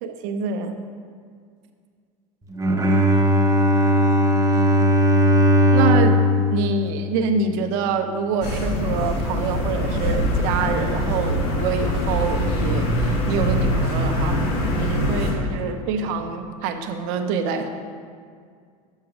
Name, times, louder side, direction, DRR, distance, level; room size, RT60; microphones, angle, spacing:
voice 1, 0.0-0.8 5.7-6.2 6.5-14.5 14.7-17.7, right 5 dB, 65° right, 7 dB, 0.7 m, -26 dB
Bowed string instrument, 2.5-7.8, equal, 15° right, 0.9 m, -18 dB
sound 1, 8.4-15.3, equal, 65° left, 1.5 m, -23 dB
7.3 x 4.7 x 4.8 m, 2.1 s
hypercardioid pair, 85°, 19 cm